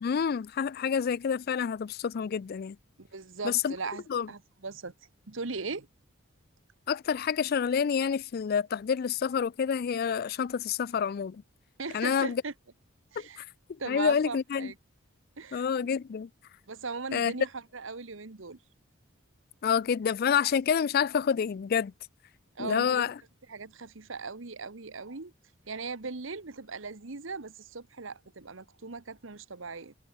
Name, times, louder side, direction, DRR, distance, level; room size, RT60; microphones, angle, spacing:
voice 1, 0.0-2.8 3.4-3.8 4.1-4.3 6.9-11.4 11.9-12.4 13.2-14.7 15.5-16.3 17.1-17.3 19.6-21.9 22.6-23.2, left 7 dB, 45° left, 0.3 m, -28 dB
voice 2, 3.0-4.9 5.3-5.9 11.8-12.5 13.1-13.4 13.8-14.7 15.4-15.9 16.7-18.6 22.5-23.1 23.5-25.3 25.7-29.9, right 4 dB, 70° right, 1.2 m, -39 dB
head